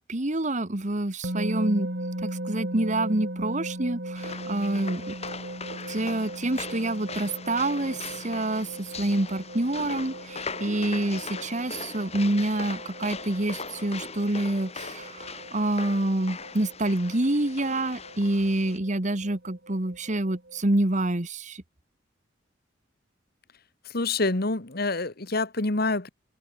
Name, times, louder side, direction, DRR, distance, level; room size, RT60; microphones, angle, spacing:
voice 1, 0.0-1.9 2.2-5.1 5.9-21.6, right 1 dB, 40° right, 1.6 m, -27 dB
sound 1, 1.2-20.6, right 1 dB, 55° right, 3.9 m, -39 dB
sound 2, 4.1-18.8, left 4 dB, 35° left, 4.9 m, -40 dB
voice 2, 23.9-26.1, left 3 dB, 55° left, 1.7 m, -27 dB
head